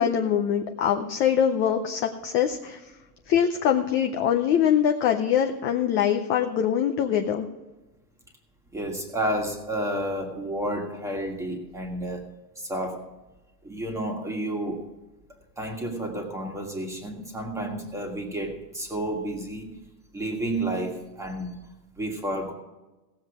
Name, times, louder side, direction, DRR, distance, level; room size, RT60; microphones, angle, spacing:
voice 1, 0.0-2.9 3.3-7.4, left 9 dB, 25° left, 4 dB, 0.5 m, -23 dB
voice 2, 8.7-12.2 12.6-13.0 13.6-14.8 15.6-19.8 20.1-21.5 22.0-22.5, right 1 dB, 5° right, 2 dB, 1.6 m, -31 dB
17.5 x 7.5 x 4.8 m, 1.1 s
supercardioid pair, 165°, 48 cm